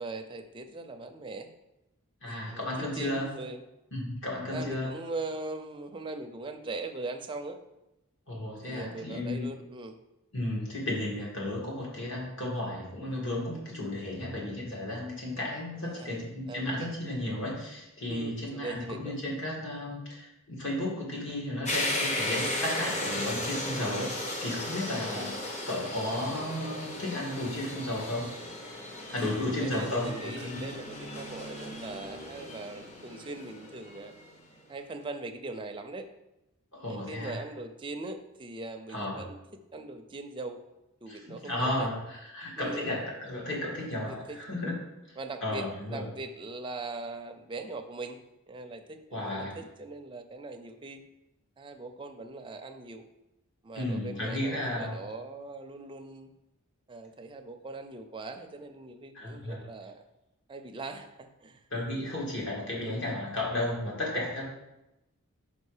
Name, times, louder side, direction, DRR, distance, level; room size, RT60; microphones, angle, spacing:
voice 1, 0.0-1.5 2.3-3.6 4.5-7.6 8.6-10.0 15.8-16.1 16.5-16.9 18.1-19.2 22.4-22.6 25.1-25.5 29.2-34.1 34.7-36.1 36.9-39.4 39.7-40.6 41.0-41.9 42.6-42.9 44.0-44.4 45.2-48.2 48.5-51.0 51.6-53.0 53.6-56.3 56.9-60.0 60.5-61.7 62.8-63.0, right 3 dB, 25° right, 6 dB, 0.5 m, -41 dB
voice 2, 2.2-3.3 3.9-4.9 8.3-9.5 10.3-28.3 29.1-30.7 36.7-37.4 38.9-39.2 41.1-44.7 45.1-46.0 49.1-49.5 53.7-55.0 59.1-59.6 61.7-64.5, left 1 dB, 60° left, -3 dB, 2.2 m, -34 dB
sound 1, 21.6-34.3, left 1 dB, 30° left, 0.9 m, -36 dB
5.3 x 5.0 x 5.0 m, 0.95 s
head